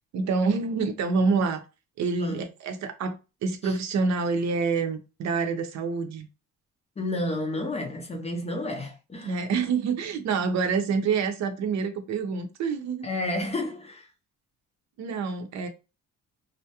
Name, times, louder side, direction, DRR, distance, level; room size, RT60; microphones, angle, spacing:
voice 1, 0.1-1.6 2.0-3.2 3.4-6.3 9.2-13.0 15.0-15.7, right 4 dB, 65° right, 0.6 m, -27 dB
voice 2, 7.0-9.4 13.0-14.1, left 1 dB, 20° left, 0.5 m, -31 dB
2.3 x 2.0 x 2.8 m
cardioid pair, 135°, 30 cm